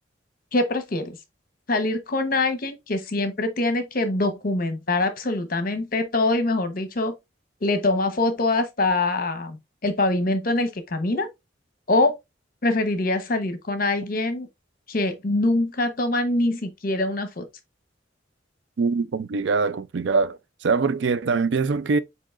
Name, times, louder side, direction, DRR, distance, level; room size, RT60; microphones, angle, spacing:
voice 1, 0.5-1.2 1.7-7.1 7.6-11.3 11.9-12.1 12.6-14.5 14.9-17.5, left 2 dB, 50° left, 0.9 m, -24 dB
voice 2, 18.8-22.0, right 4 dB, 70° right, 0.4 m, -23 dB
7.5 x 2.9 x 2.4 m
head